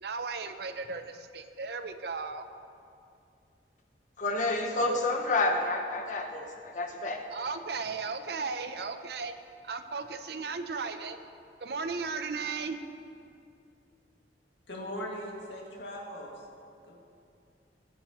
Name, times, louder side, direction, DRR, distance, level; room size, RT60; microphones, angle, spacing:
voice 1, 0.0-2.5 7.3-9.4 9.6-11.2 11.6-12.8, right 4 dB, 65° right, 9 dB, 0.6 m, -36 dB
voice 2, 4.2-7.2, left 2 dB, 45° left, 3 dB, 1.2 m, -29 dB
voice 3, 14.7-16.5 16.8-16.9, equal, 80° left, -2 dB, 2.2 m, -39 dB
21.5 x 7.5 x 3.1 m, 2.5 s
head